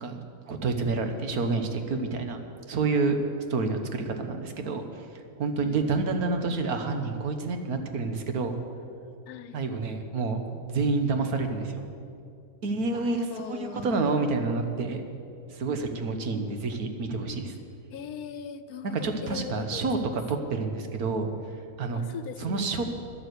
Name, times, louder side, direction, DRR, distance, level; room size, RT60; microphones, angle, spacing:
voice 1, 0.0-2.4 2.7-3.2 3.5-4.9 5.4-8.5 9.5-11.9 12.6-15.0 15.5-17.6 18.8-21.3 21.8-22.0 22.4-22.8, right 3 dB, 85° right, 6 dB, 1.6 m, -28 dB
voice 2, 5.6-6.1 9.3-9.6 12.9-14.2 16.2-16.7 17.9-20.2 21.9-22.7, left 8 dB, 90° left, 12 dB, 1.2 m, -40 dB
11.0 x 11.0 x 8.1 m, 2.5 s
omnidirectional pair, 1.5 m